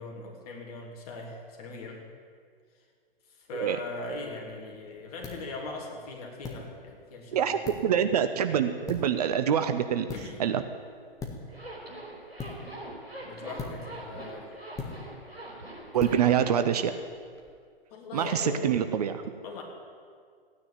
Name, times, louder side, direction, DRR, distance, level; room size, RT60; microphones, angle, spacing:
voice 1, 0.0-2.1 3.3-7.7 10.1-10.5 13.2-14.5 16.1-16.2 17.9-18.7 19.4-19.6, left 3 dB, 40° left, 0 dB, 3.2 m, -40 dB
sound 1, 4.0-17.5, left 3 dB, 10° left, 1.7 m, -44 dB
voice 2, 7.3-10.1 10.4-10.6 15.9-16.9 18.1-19.2, right 8 dB, 40° right, 9 dB, 0.8 m, -25 dB
Zipper (clothing), 11.5-16.6, right 1 dB, 85° right, 5.0 m, -43 dB
15.0 x 9.8 x 9.2 m, 2.1 s
figure-of-eight pair, 120°, 30 cm